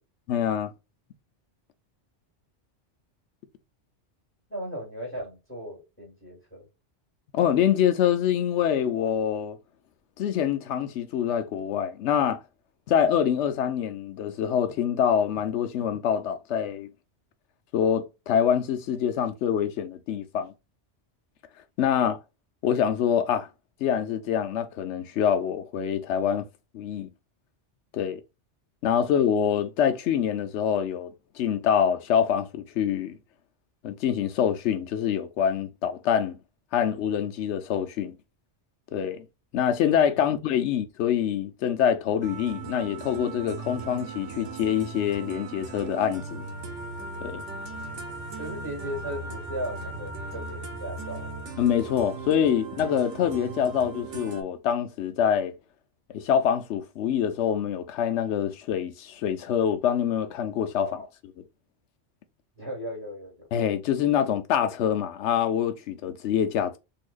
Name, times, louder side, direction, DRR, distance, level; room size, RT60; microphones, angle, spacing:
voice 1, 0.3-0.7 7.3-9.6 10.2-12.4 12.9-16.9 17.7-20.5 21.8-22.2 22.6-23.5 23.8-26.5 26.7-27.1 27.9-28.2 28.8-33.2 33.8-36.4 36.7-38.2 38.9-39.2 39.5-46.5 47.2-47.4 51.6-55.6 56.1-60.9 63.5-66.8, left 9 dB, 75° left, 0.9 m, -25 dB
voice 2, 4.5-6.7 29.0-29.1 40.1-40.3 48.4-51.3 60.8-61.1 62.6-63.4, equal, 10° left, 1.9 m, -37 dB
sound 1, 42.2-54.4, right 3 dB, 85° right, 1.2 m, -38 dB
4.1 x 2.8 x 2.4 m
omnidirectional pair, 1.2 m